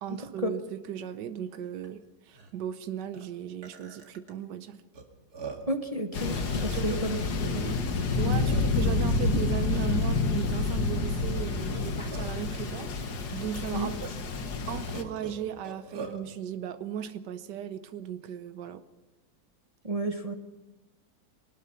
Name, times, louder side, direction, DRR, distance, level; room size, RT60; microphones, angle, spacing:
voice 1, 0.0-4.8 6.7-7.9 8.1-14.1 14.7-18.8, right 9 dB, 80° right, 1.5 m, -37 dB
Burping eructation, 1.8-1.9 2.3-2.5 3.1-3.3 3.6-4.3 4.9-5.0 5.3-5.8 6.3-7.3 8.0-8.1 8.4-9.0 9.7-10.1 11.6-12.5 13.3-13.4 13.8-13.9 14.9-16.2, right 4 dB, 60° right, 2.9 m, -43 dB
voice 2, 5.7-7.2 7.6-7.7 13.7-13.9 19.8-20.3, right 1 dB, 25° right, 1.1 m, -31 dB
Thunder, 6.1-15.0, left 3 dB, 65° left, 2.0 m, -28 dB
23.5 x 19.5 x 5.7 m
omnidirectional pair, 1.8 m